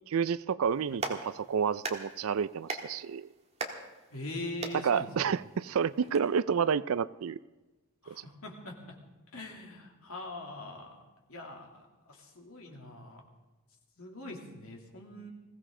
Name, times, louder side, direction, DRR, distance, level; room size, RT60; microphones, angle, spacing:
voice 1, 0.1-3.3 4.8-7.4 8.1-8.2, right 6 dB, 65° right, 0.4 m, -30 dB
Clapping, 0.7-6.2, right 3 dB, 30° right, 1.5 m, -42 dB
voice 2, 4.1-5.3 8.0-9.0 9.3-11.0 11.3-13.2 14.0-15.3, left 2 dB, 70° left, 2.8 m, -43 dB
21.0 x 16.0 x 3.8 m
head